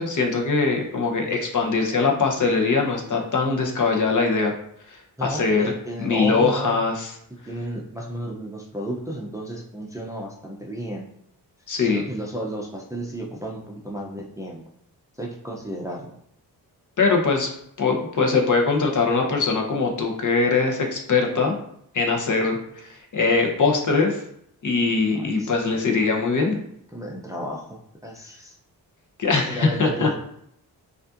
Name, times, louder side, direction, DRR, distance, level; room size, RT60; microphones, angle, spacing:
voice 1, 0.0-4.5 4.9-5.6 6.0-7.1 11.7-12.0 17.0-17.5 17.8-21.6 21.9-24.2 24.6-26.6 29.2-30.1, left 4 dB, 50° left, 1 dB, 0.9 m, -22 dB
voice 2, 5.2-6.8 7.5-11.1 11.8-14.6 15.2-16.1 25.3-25.5 26.9-28.6 29.5-30.2, right 1 dB, 10° right, -2 dB, 0.6 m, -33 dB
5.2 x 2.6 x 2.5 m, 0.71 s
cardioid pair, 90°, 40 cm